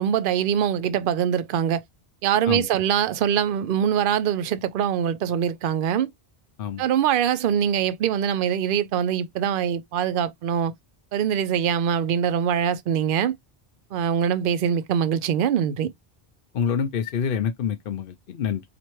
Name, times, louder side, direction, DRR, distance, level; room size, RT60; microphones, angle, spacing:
voice 1, 0.0-1.8 2.2-6.1 6.8-10.7 11.1-13.3 13.9-15.9, right 9 dB, 65° right, 0.7 m, -23 dB
voice 2, 16.5-18.6, left 7 dB, 65° left, 0.7 m, -26 dB
4.4 x 2.5 x 3.0 m
omnidirectional pair, 1.0 m